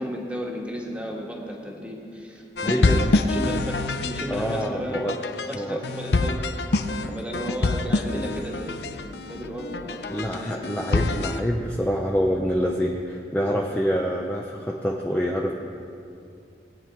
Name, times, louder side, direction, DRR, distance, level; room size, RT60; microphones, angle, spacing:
voice 1, 0.0-5.1 5.5-6.6 6.9-10.6, equal, 5° right, -1 dB, 1.5 m, -34 dB
sound 1, 2.6-11.4, left 3 dB, 70° left, 0.6 m, -26 dB
voice 2, 2.6-3.0 4.3-5.2 5.5-5.8 10.1-15.5, equal, 10° left, -1 dB, 0.6 m, -26 dB
19.5 x 9.2 x 4.5 m, 2.5 s
head